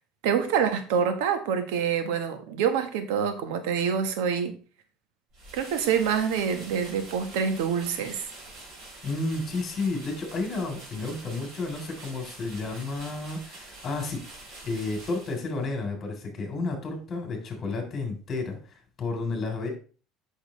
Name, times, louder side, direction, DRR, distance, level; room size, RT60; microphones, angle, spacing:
voice 1, 0.2-4.5 5.5-8.3, right 7 dB, 85° right, 7 dB, 1.4 m, -26 dB
sound 1, 5.3-15.7, right 2 dB, 50° right, 4.4 m, -46 dB
voice 2, 9.0-14.2 14.6-19.7, left 3 dB, 30° left, 2 dB, 3.6 m, -31 dB
8.6 x 6.4 x 3.2 m, 0.38 s
supercardioid pair, 120°, 0 cm